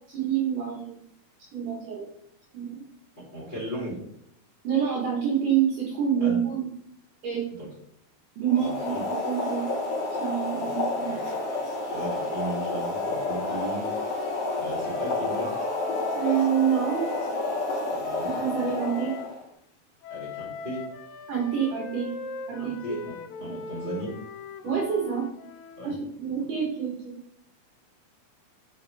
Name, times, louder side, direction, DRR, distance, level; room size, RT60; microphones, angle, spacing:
voice 1, 0.1-1.0 1.5-2.1 2.5-2.8 4.6-6.7 7.2-7.4 8.4-9.6 10.1-11.4 13.4-13.5 16.1-17.1 18.2-19.1 21.3-22.1 22.5-23.0 23.4-23.5 24.6-25.3 25.8-27.2, right 8 dB, 65° right, -4 dB, 2.5 m, -27 dB
voice 2, 3.3-4.0 6.2-6.4 7.5-7.7 8.6-9.0 11.0-11.2 11.9-13.9 14.6-15.5 17.9-18.3 20.1-20.8 22.6-24.1 25.8-25.9, equal, 15° left, -8 dB, 2.4 m, -36 dB
Boiling, 8.4-19.4, left 2 dB, 40° left, 3.1 m, -30 dB
Wind instrument woodwind instrument, 12.9-19.3 20.0-26.1, left 5 dB, 85° left, 1.9 m, -41 dB
6.3 x 5.7 x 3.3 m, 0.70 s
omnidirectional pair, 4.7 m